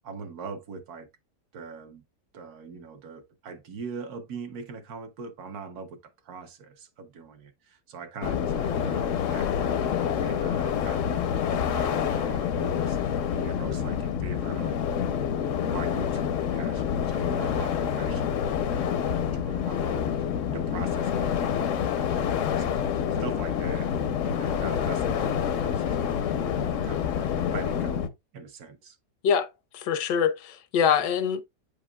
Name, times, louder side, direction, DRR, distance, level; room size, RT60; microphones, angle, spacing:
voice 1, 0.0-1.1 1.5-2.0 2.3-6.0 6.2-15.2 15.7-23.9 24.2-29.0, right 5 dB, 65° right, 1.3 m, -42 dB
sound 1, 8.2-28.1, left 8 dB, 65° left, 0.8 m, -27 dB
voice 2, 29.7-31.4, left 7 dB, 80° left, 1.3 m, -24 dB
8.2 x 5.1 x 2.2 m
omnidirectional pair, 1.9 m